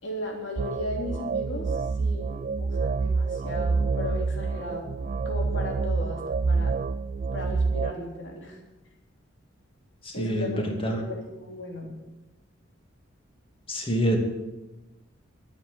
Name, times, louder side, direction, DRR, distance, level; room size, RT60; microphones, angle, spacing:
voice 1, 0.0-1.7 2.0-4.9 5.2-6.8 7.3-8.6 10.1-11.9, left 1 dB, 65° left, -1 dB, 3.4 m, -36 dB
sound 1, 0.6-7.9, right 4 dB, 40° right, 0.4 m, -27 dB
voice 2, 10.0-11.0 13.7-14.2, equal, 30° left, 2 dB, 2.5 m, -26 dB
13.0 x 7.5 x 9.7 m, 1.1 s
head